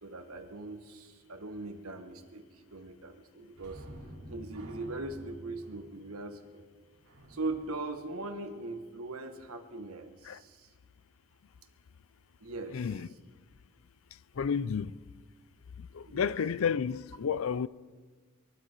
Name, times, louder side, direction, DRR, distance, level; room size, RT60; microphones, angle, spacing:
voice 1, 0.0-3.8 4.3-6.6 7.3-10.7 12.4-12.9 16.1-16.3, right 2 dB, 75° right, 1.4 m, -40 dB
sound 1, 3.5-8.9 16.3-16.4 16.8-17.0, right 1 dB, 90° right, 3.9 m, -50 dB
voice 2, 14.4-15.0 15.8-17.7, left 6 dB, 65° left, 0.4 m, -31 dB
23.0 x 12.5 x 4.6 m
head